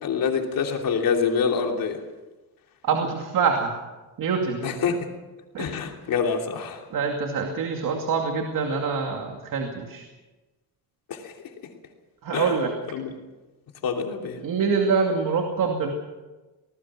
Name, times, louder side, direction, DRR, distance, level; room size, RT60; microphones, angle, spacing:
voice 1, 0.0-2.0 4.6-5.1 5.6-6.8 11.1-11.2 12.3-12.5 12.9-13.1 13.8-14.4, left 6 dB, 60° left, 2 dB, 3.1 m, -26 dB
voice 2, 2.8-3.8 4.2-4.7 5.5-5.7 6.9-10.0 12.2-12.7 14.4-15.9, right 5 dB, 55° right, 3 dB, 2.5 m, -25 dB
25.0 x 19.5 x 6.0 m, 1.2 s
cardioid pair, 165°, 38 cm